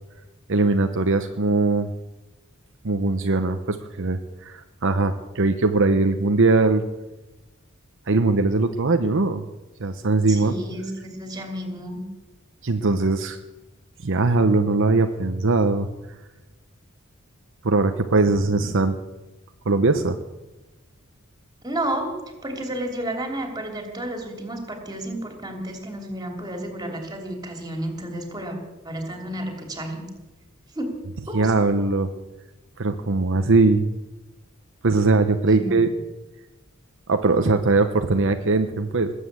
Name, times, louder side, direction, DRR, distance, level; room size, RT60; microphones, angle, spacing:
voice 1, 0.5-1.9 2.8-6.8 8.1-9.4 9.8-10.5 12.6-13.4 14.0-15.9 17.6-19.0 19.7-20.2 31.3-32.1 32.8-33.9 34.8-35.9 37.1-39.1, right 3 dB, 60° right, 7 dB, 0.9 m, -20 dB
voice 2, 10.3-12.0 21.6-22.1 22.4-28.6 28.8-30.0 30.7-30.9 31.3-31.5 35.5-35.9, right 1 dB, 20° right, 3 dB, 3.1 m, -31 dB
20.5 x 8.4 x 8.2 m, 1.0 s
head